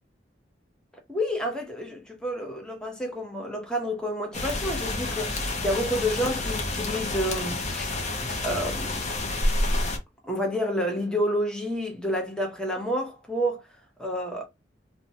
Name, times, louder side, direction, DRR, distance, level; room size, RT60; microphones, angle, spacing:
voice 1, 1.1-7.9 8.4-8.9 10.2-13.6 14.0-14.5, equal, 5° left, 0.8 m, -29 dB
sound 1, 4.3-10.0, left 2 dB, 40° left, 0.6 m, -29 dB
2.8 x 2.2 x 2.7 m
head